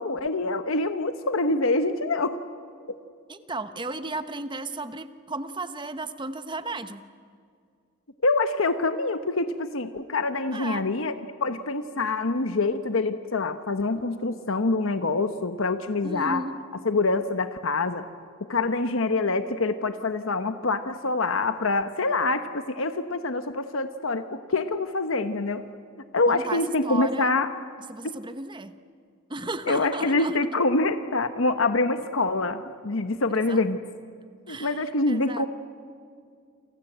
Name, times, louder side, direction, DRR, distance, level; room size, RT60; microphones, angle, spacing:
voice 1, 0.0-2.4 2.9-3.0 8.2-11.1 11.4-16.4 16.8-18.0 18.5-25.7 26.1-27.5 28.0-28.1 29.7-33.8 34.5-35.5, left 3 dB, 70° left, 9 dB, 1.0 m, -25 dB
voice 2, 3.3-7.0 10.5-10.8 16.0-16.6 26.3-27.3 27.9-28.7 29.3-30.4 33.5-33.7 34.5-35.4, right 2 dB, 20° right, 10 dB, 1.0 m, -34 dB
29.0 x 25.0 x 8.0 m, 2.2 s
head